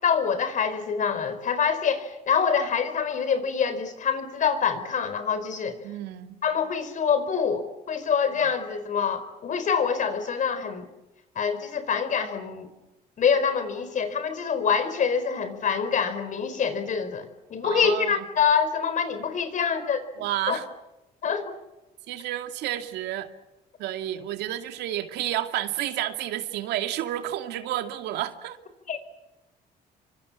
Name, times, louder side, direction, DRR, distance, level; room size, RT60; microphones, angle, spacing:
voice 1, 0.0-5.8 6.4-10.9 11.3-12.7 13.2-20.0 20.5-20.6 21.2-21.5 28.9-29.0, left 6 dB, 50° left, 11 dB, 4.6 m, -25 dB
voice 2, 5.8-6.4 17.6-18.2 20.2-20.7 22.1-23.3 23.8-28.6, right 13 dB, 85° right, 7 dB, 2.4 m, -30 dB
29.0 x 25.0 x 7.2 m, 0.98 s
cardioid pair, 110°, 17 cm